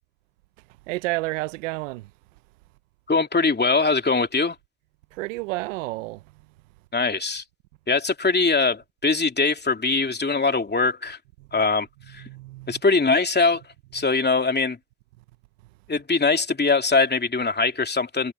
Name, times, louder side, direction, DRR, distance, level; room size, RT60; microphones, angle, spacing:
voice 1, 0.9-2.1 5.1-6.2 12.2-12.8, right 22 dB, 90° right, 0.8 m, -30 dB
voice 2, 3.1-4.5 6.9-7.4 7.9-11.2 11.5-11.9 12.1-12.2 12.7-13.6 13.9-14.8 15.9-18.3, left 4 dB, 25° left, 3.0 m, -22 dB
hypercardioid pair, 45°, 37 cm